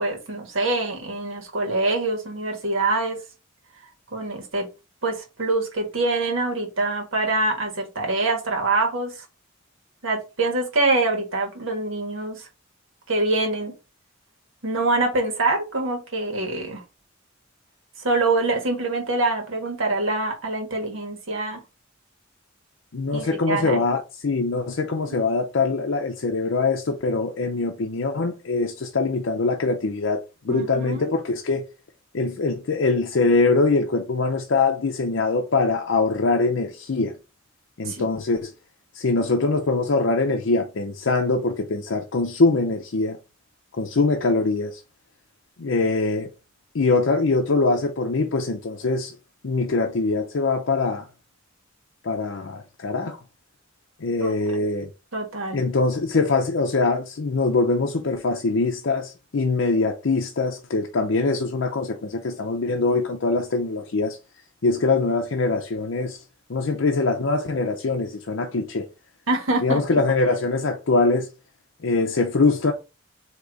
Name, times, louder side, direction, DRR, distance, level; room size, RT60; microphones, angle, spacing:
voice 1, 0.0-3.2 4.1-4.7 5.0-9.2 10.0-12.4 13.1-13.7 14.6-16.8 18.0-21.6 23.1-23.8 25.1-25.2 30.5-31.1 37.8-38.1 54.2-54.3 55.1-55.6 69.3-69.8, right 2 dB, 80° right, 1.5 m, -25 dB
voice 2, 22.9-31.7 32.1-37.2 37.8-38.5 38.9-43.2 43.8-44.8 45.6-46.3 46.7-49.2 49.4-51.1 52.0-53.2 54.0-54.9 55.5-64.2 64.6-66.2 66.5-68.9 69.6-71.3 71.8-72.7, left 3 dB, 65° left, 0.6 m, -23 dB
3.9 x 2.9 x 4.7 m
head